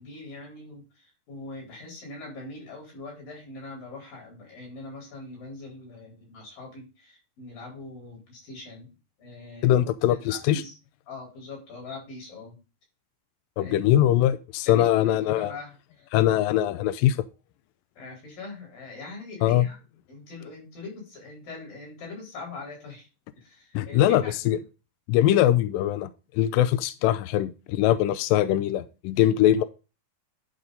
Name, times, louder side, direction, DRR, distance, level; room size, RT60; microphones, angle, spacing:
voice 1, 0.0-8.9 9.2-9.8 10.1-10.8 11.1-12.6 13.6-13.8 14.7-15.7 16.0-16.1 18.0-19.8 20.1-23.1 23.3-24.3, left 3 dB, 60° left, -1 dB, 5.9 m, -42 dB
voice 2, 9.6-10.6 13.6-15.5 16.1-17.2 19.4-19.7 23.7-24.6 25.1-29.6, left 12 dB, 80° left, 13 dB, 2.0 m, -22 dB
11.0 x 4.2 x 5.1 m, 0.31 s
omnidirectional pair, 4.4 m